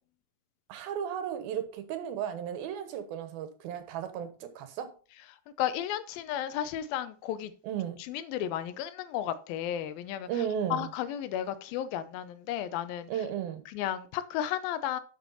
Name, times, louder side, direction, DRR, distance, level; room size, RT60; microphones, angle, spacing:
voice 1, 0.7-4.9 7.6-8.0 10.3-10.9 13.1-13.6, right 9 dB, 90° right, 3.1 m, -34 dB
voice 2, 5.6-7.5 8.1-10.3 10.7-13.1 13.7-15.0, left 11 dB, 85° left, 2.6 m, -33 dB
11.0 x 6.2 x 4.1 m
omnidirectional pair, 4.1 m